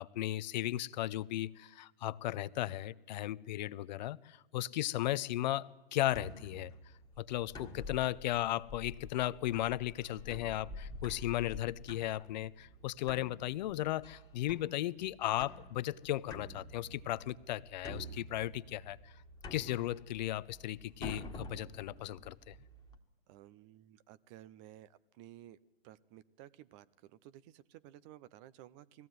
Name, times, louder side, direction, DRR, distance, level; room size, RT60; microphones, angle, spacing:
voice 1, 0.0-6.7 7.2-19.1 19.5-22.6, left 14 dB, 45° left, 17 dB, 0.6 m, -36 dB
sound 1, 6.1-23.0, left 2 dB, 10° left, 1.7 m, -49 dB
voice 2, 23.3-25.6 25.8-29.1, right 13 dB, 30° right, 16 dB, 0.6 m, -55 dB
20.0 x 15.5 x 9.3 m, 1.1 s
hypercardioid pair, 120°, 30 cm